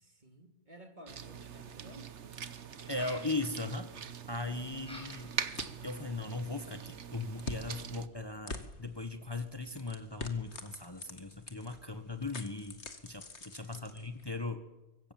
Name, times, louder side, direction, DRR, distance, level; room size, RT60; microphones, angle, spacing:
voice 1, 0.0-2.1 4.7-4.9 13.6-14.1, equal, 40° right, 6 dB, 2.8 m, -55 dB
sound 1, 1.1-8.1, right 7 dB, 85° right, 1.4 m, -43 dB
sound 2, 2.7-3.3 4.8-5.4 5.8-6.4, equal, 5° left, 8.0 m, -49 dB
voice 2, 2.9-3.9 4.3-5.3 5.8-14.6, left 3 dB, 20° left, 8 dB, 1.4 m, -38 dB
sound 3, 4.3-14.5, left 3 dB, 75° left, 2.4 m, -48 dB
25.0 x 23.5 x 7.6 m, 1.0 s
omnidirectional pair, 1.2 m